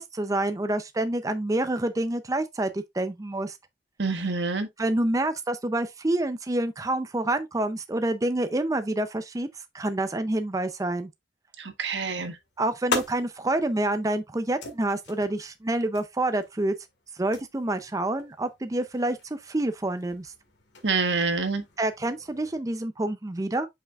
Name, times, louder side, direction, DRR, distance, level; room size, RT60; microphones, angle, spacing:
voice 1, 0.0-3.6 4.8-9.5 9.7-11.1 12.6-16.8 17.2-20.3 21.8-23.7, right 1 dB, 20° right, 0.5 m, -27 dB
voice 2, 4.0-4.7 11.6-12.4 20.8-21.6, right 4 dB, 85° right, 1.3 m, -27 dB
sound 1, 12.2-22.6, left 3 dB, 80° left, 1.9 m, -40 dB
7.1 x 5.6 x 2.4 m
head